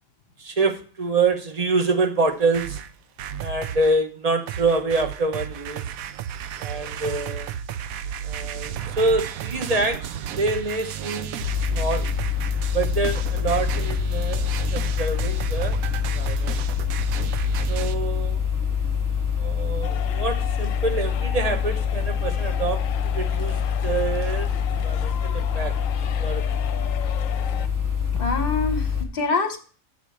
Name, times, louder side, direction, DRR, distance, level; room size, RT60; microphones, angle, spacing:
voice 1, 0.4-2.8 3.4-5.9 6.6-7.5 8.2-12.1 12.7-14.4 14.7-16.6 17.7-18.4 19.4-25.8 26.1-26.8, right 3 dB, 35° right, 6 dB, 0.8 m, -26 dB
sound 1, 2.3-4.0 4.5-18.0, right 9 dB, 85° right, 1.0 m, -33 dB
sound 2, 11.4-29.0, left 7 dB, 15° right, 1.2 m, -25 dB
sound 3, 19.8-27.7, left 11 dB, 75° left, 0.9 m, -37 dB
voice 2, 28.1-29.6, left 3 dB, 45° left, 5 dB, 1.0 m, -25 dB
7.9 x 4.4 x 7.0 m, 0.40 s
omnidirectional pair, 1.4 m